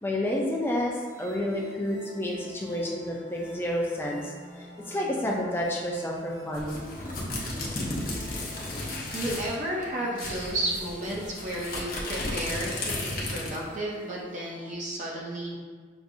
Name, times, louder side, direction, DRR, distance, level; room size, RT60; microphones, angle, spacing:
voice 1, 0.0-6.8, left 1 dB, 10° left, -2 dB, 0.5 m, -30 dB
sound 1, 1.0-14.7, left 1 dB, 60° right, 1.4 m, -47 dB
sound 2, 6.5-9.6 9.8-9.9 10.2-13.7, left 2 dB, 45° left, 0.8 m, -34 dB
voice 2, 8.2-8.7 9.1-15.6, right 1 dB, 40° right, -4 dB, 0.6 m, -33 dB
6.0 x 2.6 x 2.6 m, 1.5 s
head